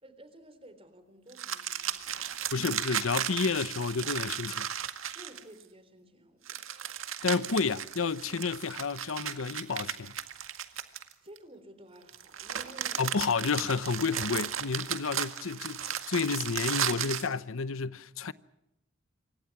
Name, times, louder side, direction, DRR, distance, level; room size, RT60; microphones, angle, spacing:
voice 1, 0.0-2.5 5.2-6.7 11.2-13.2, right 1 dB, 30° right, 3.5 m, -53 dB
sound 1, 1.3-5.6 6.5-11.4 12.1-17.3, right 9 dB, 85° right, 1.9 m, -35 dB
voice 2, 2.5-4.7 7.2-10.1 13.0-18.3, left 4 dB, 85° left, 0.8 m, -31 dB
27.5 x 25.0 x 6.0 m
head